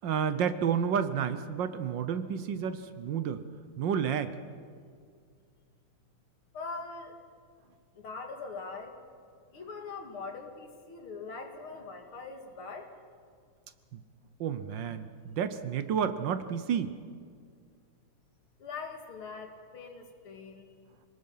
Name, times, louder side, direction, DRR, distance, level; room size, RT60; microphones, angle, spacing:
voice 1, 0.0-3.4 3.8-4.3 13.9-14.0 14.4-16.9, right 7 dB, 65° right, 11 dB, 1.4 m, -30 dB
voice 2, 6.5-7.1 8.0-8.9 9.5-12.8 18.6-20.7, left 4 dB, 80° left, 4 dB, 3.0 m, -42 dB
26.5 x 19.0 x 5.6 m, 2.1 s
omnidirectional pair, 2.3 m